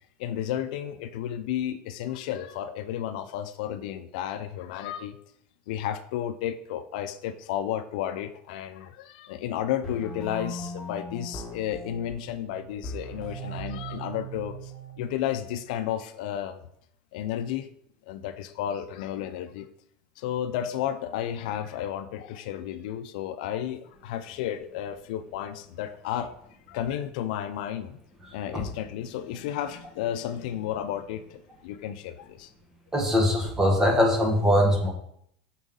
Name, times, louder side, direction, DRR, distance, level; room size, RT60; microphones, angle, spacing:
voice 1, 0.2-5.2 5.7-14.7 15.0-16.6 17.1-17.7 18.1-19.7 20.2-26.3 26.7-28.0 28.3-32.5, left 10 dB, 70° left, 10 dB, 0.5 m, -32 dB
sound 1, 9.8-15.8, right 2 dB, 10° left, 1.7 m, -39 dB
voice 2, 32.9-34.9, equal, 10° right, 1 dB, 1.3 m, -21 dB
6.1 x 5.5 x 3.8 m, 0.70 s
supercardioid pair, 160°, 5 cm